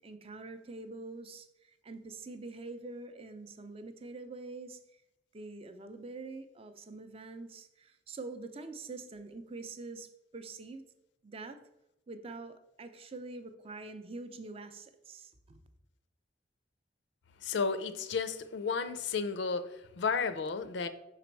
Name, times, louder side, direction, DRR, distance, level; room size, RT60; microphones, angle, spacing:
voice 1, 0.0-4.8 5.3-10.8 11.2-11.6 12.1-15.6, right 3 dB, 30° right, 0.5 m, -45 dB
voice 2, 17.4-20.9, left 5 dB, 70° left, 0.4 m, -33 dB
5.9 x 4.0 x 4.5 m
head